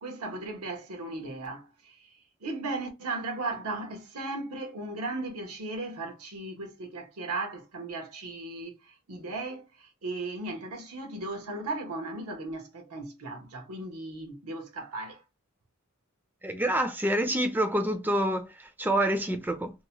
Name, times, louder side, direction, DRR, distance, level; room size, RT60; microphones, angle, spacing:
voice 1, 0.0-15.2, right 2 dB, 85° right, 0.9 m, -36 dB
voice 2, 16.4-19.7, right 1 dB, 10° right, 0.3 m, -27 dB
2.9 x 2.1 x 2.7 m
head